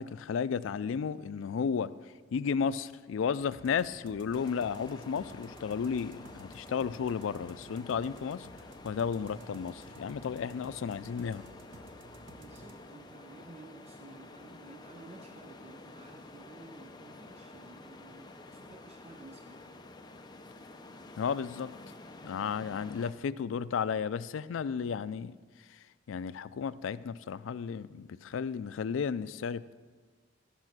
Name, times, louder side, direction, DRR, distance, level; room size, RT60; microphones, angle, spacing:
voice 1, 0.0-1.9 2.3-8.5 8.8-11.5 21.2-21.7 22.2-25.4 25.7-25.8 26.1-29.7, left 6 dB, 85° left, 17 dB, 0.4 m, -33 dB
sound 1, 3.4-12.7, right 2 dB, 75° right, 1.0 m, -54 dB
sound 2, 4.3-23.1, left 2 dB, 20° left, 0.6 m, -50 dB
voice 2, 12.3-19.6, right 3 dB, 35° right, 6 dB, 0.5 m, -53 dB
13.5 x 5.7 x 6.0 m, 1.4 s
head